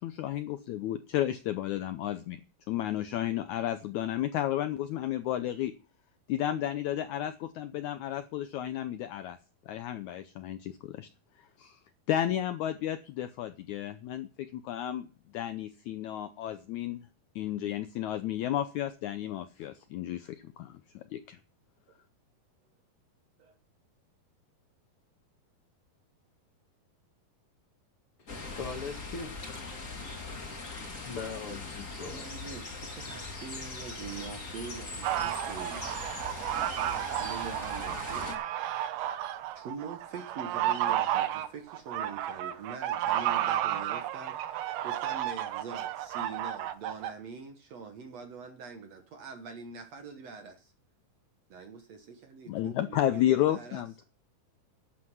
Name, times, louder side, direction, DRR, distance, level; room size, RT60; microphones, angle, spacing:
voice 1, 0.0-2.4 2.7-5.7 6.3-9.4 9.7-11.1 11.6-11.8 12.1-15.1 15.3-17.0 17.3-21.4 52.5-54.0, left 12 dB, 90° left, 1.6 m, -32 dB
sound 1, 28.3-38.3, left 3 dB, 25° left, 2.1 m, -41 dB
voice 2, 28.6-29.6 31.0-32.3, left 4 dB, 50° left, 2.0 m, -40 dB
voice 3, 32.0-35.9 36.5-38.3 39.6-50.7 51.5-54.0, right 5 dB, 60° right, 1.9 m, -44 dB
sound 2, 35.0-47.1, right 12 dB, 85° right, 2.8 m, -32 dB
11.5 x 8.6 x 6.2 m
omnidirectional pair, 4.3 m